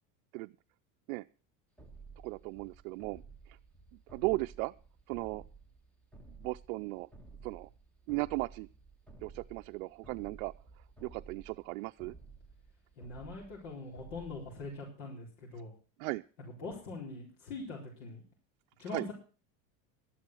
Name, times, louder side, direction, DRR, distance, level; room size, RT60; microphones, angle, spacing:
sound 1, 1.8-14.9, right 4 dB, 5° left, 1.7 m, -54 dB
voice 1, 2.2-3.2 3.5-3.6 4.1-4.7 5.1-5.4 6.4-7.1 7.4-7.7 8.1-8.7 9.2-10.5 11.0-12.1 16.0-16.2 18.9-19.1, right 23 dB, 80° right, 8 dB, 0.5 m, -36 dB
voice 2, 13.0-15.7 16.4-18.2 18.8-19.1, left 3 dB, 85° left, -2 dB, 4.5 m, -43 dB
12.5 x 10.5 x 6.1 m, 0.38 s
supercardioid pair, 140°, 41 cm